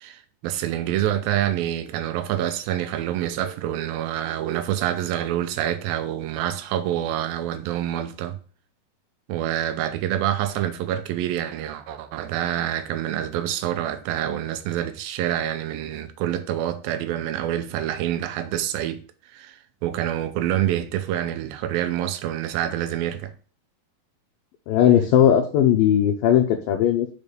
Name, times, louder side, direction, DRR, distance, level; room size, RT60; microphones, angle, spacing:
voice 1, 0.0-8.4 9.3-19.0 19.3-23.3, right 11 dB, 80° right, 2.5 m, -27 dB
voice 2, 24.7-27.1, left 10 dB, 75° left, 2.5 m, -18 dB
7.1 x 4.1 x 6.7 m
omnidirectional pair, 4.3 m